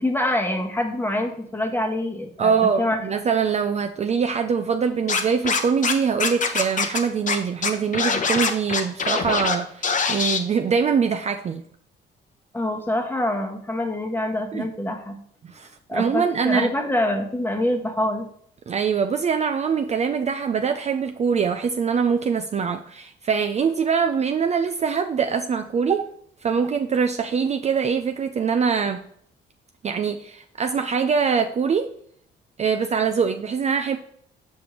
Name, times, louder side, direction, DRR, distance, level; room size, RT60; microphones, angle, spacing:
voice 1, 0.0-3.0 12.5-15.2 15.9-18.3, left 1 dB, 10° left, 3 dB, 1.0 m, -25 dB
voice 2, 2.4-11.6 14.5-14.7 15.4-16.7 18.7-26.0 26.4-29.0 29.8-31.9 32.6-34.0, right 6 dB, 35° right, 6 dB, 0.4 m, -23 dB
Scratching (performance technique), 5.1-5.9 6.2-7.0 7.3-7.4 7.6-9.5 9.8-10.4, left 5 dB, 40° left, 0.8 m, -23 dB
6.5 x 5.2 x 3.0 m, 0.65 s
cardioid pair, 90°, 20 cm